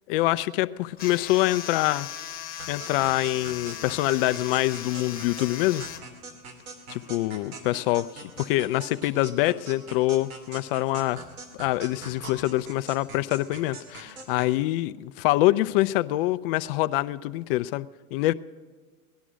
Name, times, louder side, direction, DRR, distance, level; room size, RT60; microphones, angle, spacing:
voice 1, 0.1-2.1 2.7-5.8 6.9-11.2 11.5-18.3, left 17 dB, 40° left, 14 dB, 0.5 m, -25 dB
sound 1, 1.0-6.0, left 9 dB, 20° left, 1.1 m, -38 dB
sound 2, 2.6-14.6, right 3 dB, 75° right, 2.9 m, -43 dB
18.0 x 11.5 x 6.2 m, 1.4 s
hypercardioid pair, 120°, 44 cm